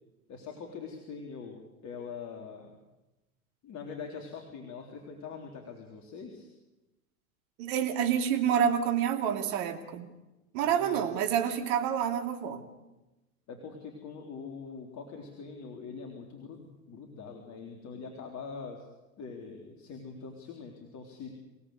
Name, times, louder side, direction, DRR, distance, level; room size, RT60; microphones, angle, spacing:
voice 1, 0.3-2.8 3.6-6.5 10.6-11.1 13.5-18.9 19.2-21.3, left 5 dB, 40° left, 3 dB, 3.8 m, -43 dB
voice 2, 7.6-10.1 10.5-12.6, right 8 dB, 60° right, 6 dB, 2.8 m, -28 dB
26.0 x 18.0 x 8.2 m, 1.0 s
hypercardioid pair, 95°, 44 cm